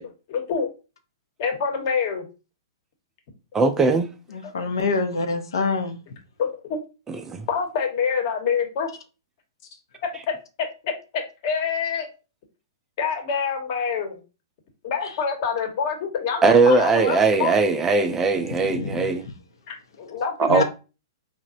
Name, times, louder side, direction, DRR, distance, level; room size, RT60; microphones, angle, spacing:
voice 1, 0.3-0.7 1.4-2.2 6.4-6.8 7.5-8.9 10.8-12.1 13.0-14.2 14.8-17.6 19.7-20.6, left 6 dB, 50° left, 0.9 m, -26 dB
voice 2, 3.5-4.1 7.1-7.5 16.4-19.3 20.4-20.6, right 4 dB, 15° right, 0.3 m, -19 dB
voice 3, 4.3-6.0 18.6-19.1 20.5-20.6, left 3 dB, 80° left, 0.5 m, -25 dB
4.0 x 2.1 x 2.5 m
hypercardioid pair, 130°, 2 cm